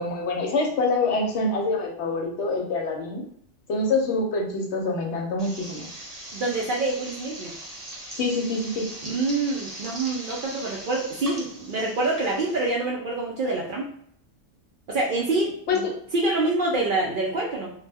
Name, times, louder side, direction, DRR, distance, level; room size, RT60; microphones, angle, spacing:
voice 1, 0.0-3.2 3.7-5.9 8.2-8.8 15.7-15.9, left 3 dB, 70° left, 1 dB, 0.8 m, -25 dB
sound 1, 5.4-12.7, right 1 dB, 35° right, 0.9 m, -40 dB
voice 2, 6.3-7.5 9.0-13.9 14.9-15.9 16.1-17.7, right 2 dB, 60° right, -3 dB, 0.6 m, -26 dB
2.2 x 2.1 x 3.3 m, 0.65 s
omnidirectional pair, 1.3 m